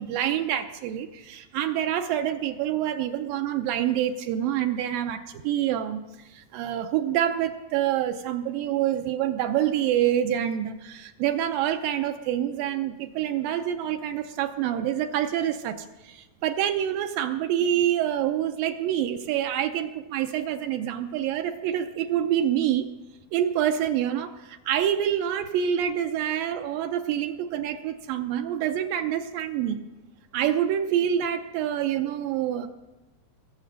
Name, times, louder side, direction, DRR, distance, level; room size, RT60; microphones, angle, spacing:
voice 1, 0.0-6.0 6.3-22.9 23.3-29.9 30.3-32.7, right 10 dB, 80° right, 6 dB, 2.3 m, -27 dB
21.5 x 7.4 x 6.4 m, 1.0 s
omnidirectional pair, 4.3 m